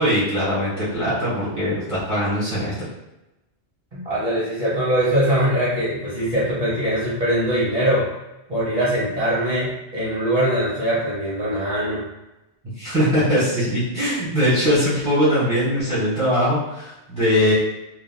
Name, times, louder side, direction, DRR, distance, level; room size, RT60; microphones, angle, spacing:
voice 1, 0.0-2.9 12.8-17.5, equal, 5° right, -13 dB, 1.4 m, -21 dB
voice 2, 3.9-8.1 8.5-12.1, right 1 dB, 40° right, -10 dB, 0.9 m, -22 dB
3.6 x 2.6 x 2.2 m, 0.96 s
omnidirectional pair, 1.1 m